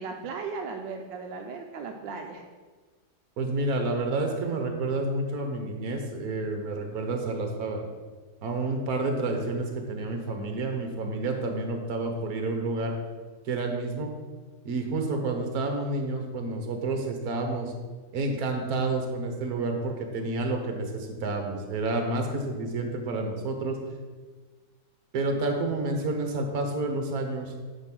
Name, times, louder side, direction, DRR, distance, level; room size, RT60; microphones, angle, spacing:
voice 1, 0.0-2.4, right 4 dB, 80° right, 3 dB, 1.3 m, -36 dB
voice 2, 3.4-7.8 8.4-12.9 13.4-14.1 14.6-17.7 18.1-23.8 25.1-27.6, right 2 dB, 60° right, 4 dB, 1.5 m, -29 dB
9.3 x 3.5 x 6.0 m, 1.4 s
omnidirectional pair, 2.0 m